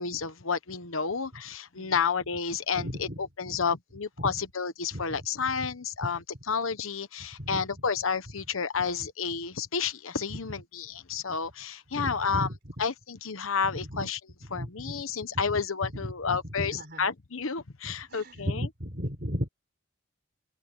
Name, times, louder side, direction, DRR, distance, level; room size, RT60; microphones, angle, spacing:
voice 1, 0.0-6.2 6.5-12.5 12.8-14.2 14.5-18.7, left 5 dB, 80° left, 1.1 m, -31 dB
voice 2, 2.8-3.2 3.5-3.6 4.2-4.3 4.9-5.1 5.5-5.6 6.0-6.1 7.4-7.7 10.3-10.4 11.9-12.7 13.6-14.1 14.5-15.0 15.3-17.1 17.8-19.5, equal, 50° right, 4.9 m, -36 dB
open air
head